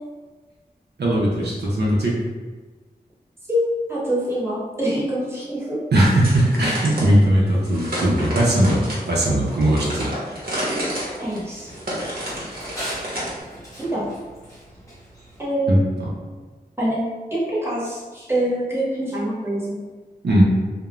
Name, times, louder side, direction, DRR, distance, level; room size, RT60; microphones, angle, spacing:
voice 1, 1.0-2.1 5.9-10.1 15.7-15.8 20.2-20.4, right 1 dB, 85° right, -5 dB, 0.6 m, -18 dB
voice 2, 3.5-5.8 11.2-11.7 13.8-14.1 15.4-15.9 16.8-17.0 17.3-19.8, right 1 dB, 15° right, -8 dB, 1.0 m, -25 dB
sound 1, 5.9-7.1 7.6-13.4, equal, 60° right, 0.9 m, -30 dB
Run, 10.3-15.4, equal, 20° left, 1.0 m, -39 dB
2.4 x 2.1 x 3.0 m, 1.3 s
wide cardioid pair, 60°, 17 cm